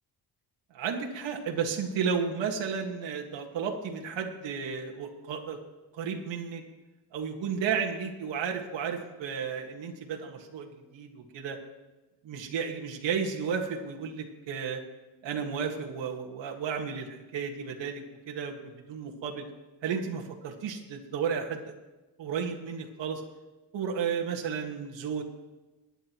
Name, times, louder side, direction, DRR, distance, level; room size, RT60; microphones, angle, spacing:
voice 1, 0.7-5.6 5.9-6.6 7.1-11.6 12.2-14.8 15.2-18.6 18.9-19.5 19.8-21.7 22.2-23.2 23.7-25.2, right 6 dB, 65° right, 1 dB, 1.9 m, -33 dB
22.5 x 10.0 x 3.1 m, 1.1 s
cardioid pair, 115°, 47 cm